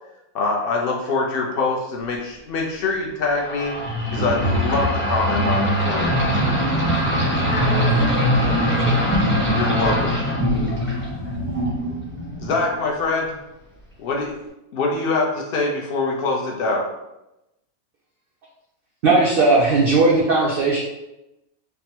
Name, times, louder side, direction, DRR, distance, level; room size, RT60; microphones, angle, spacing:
voice 1, 0.3-3.7 4.1-6.1 9.5-10.1 12.4-13.4 14.0-14.3 14.7-16.9, left 3 dB, 70° left, -1 dB, 0.5 m, -24 dB
sound 1, 3.3-12.7, equal, 10° left, 0.6 m, -21 dB
voice 2, 7.4-9.1 10.5-10.8, left 1 dB, 85° left, -2 dB, 1.3 m, -31 dB
voice 3, 19.0-20.8, right 3 dB, 90° right, -2 dB, 0.5 m, -17 dB
3.4 x 2.1 x 2.8 m, 0.92 s
omnidirectional pair, 1.5 m